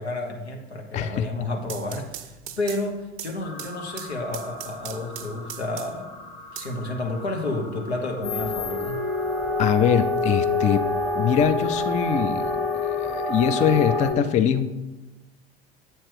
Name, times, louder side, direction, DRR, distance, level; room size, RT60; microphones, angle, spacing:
voice 1, 0.0-9.1, left 2 dB, 85° left, 1 dB, 0.9 m, -31 dB
voice 2, 0.9-1.3 9.6-12.5 13.0-14.7, left 9 dB, 25° left, 10 dB, 0.3 m, -22 dB
sound 1, 1.6-6.1 6.6-7.5, right 11 dB, 45° right, 0.5 m, -40 dB
sound 2, 3.4-9.6, left 2 dB, 60° left, 1.2 m, -43 dB
sound 3, 8.2-14.1, left 3 dB, 5° left, 0.8 m, -26 dB
7.8 x 2.9 x 4.7 m, 1.1 s
figure-of-eight pair, 70°, 32 cm